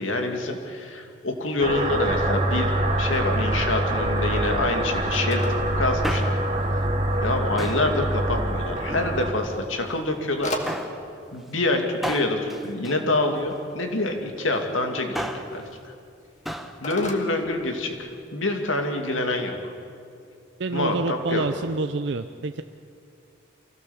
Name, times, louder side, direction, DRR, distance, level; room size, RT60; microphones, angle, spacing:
voice 1, 0.0-2.7 3.0-6.4 7.2-10.5 11.3-15.9 16.8-19.7 20.7-21.5, left 2 dB, 85° left, 4 dB, 2.5 m, -26 dB
sound 1, 1.6-9.3, right 1 dB, 35° right, 1.6 m, -25 dB
Telephone, 3.8-18.3, left 1 dB, 40° left, 2.1 m, -41 dB
Male speech man speaking, 6.0-6.6 7.6-8.0 8.8-9.6 10.7-11.0 12.0-13.7 14.9-15.6 16.5-16.8 17.1-17.2, equal, ahead, 1.0 m, -34 dB
voice 2, 20.6-22.6, right 3 dB, 65° right, 8 dB, 0.6 m, -27 dB
24.5 x 16.5 x 7.2 m, 2.3 s
head